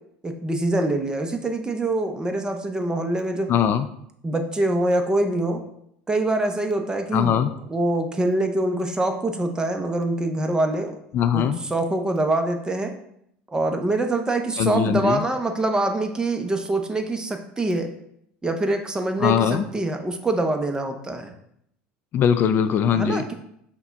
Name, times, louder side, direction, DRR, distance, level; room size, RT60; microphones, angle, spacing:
voice 1, 0.2-3.5 4.2-5.6 6.1-7.4 7.7-11.0 11.3-12.9 13.5-17.9 18.4-21.3 22.9-23.3, right 2 dB, 15° right, 5 dB, 0.7 m, -24 dB
voice 2, 3.5-3.9 7.1-7.5 11.1-11.6 14.6-15.2 19.2-19.6 22.1-23.2, left 8 dB, 50° left, 9 dB, 0.3 m, -21 dB
5.8 x 2.2 x 4.0 m, 0.73 s
supercardioid pair, 90°, 5 cm